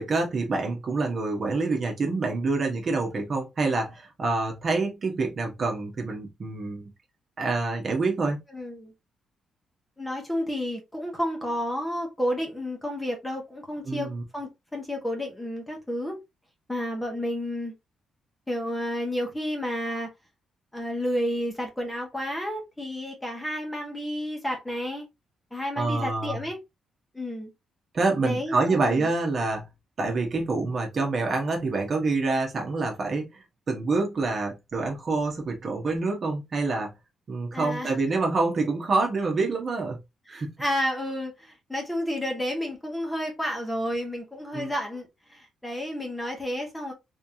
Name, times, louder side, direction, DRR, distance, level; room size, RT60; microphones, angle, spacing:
voice 1, 0.0-6.9 7.4-8.4 13.8-14.2 25.8-26.4 27.9-29.7 30.0-36.9 37.3-40.0 40.3-40.5 44.5-44.7, right 3 dB, 40° right, 1.2 m, -27 dB
voice 2, 8.5-8.9 10.0-16.2 16.7-17.7 18.5-20.1 20.7-25.1 25.5-26.6 27.1-27.5 28.2-29.1 37.5-37.9 40.3-46.9, equal, 10° left, 1.3 m, -31 dB
3.6 x 3.3 x 2.7 m
cardioid pair, 125°, 0 cm